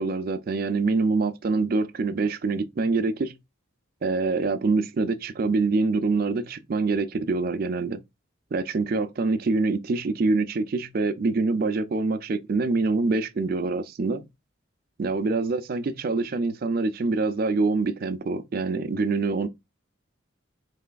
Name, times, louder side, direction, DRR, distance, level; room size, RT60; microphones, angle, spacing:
voice 1, 0.0-3.4 4.0-8.0 8.5-14.3 15.0-19.5, right 3 dB, 45° right, 0.4 m, -25 dB
4.7 x 3.2 x 2.2 m
head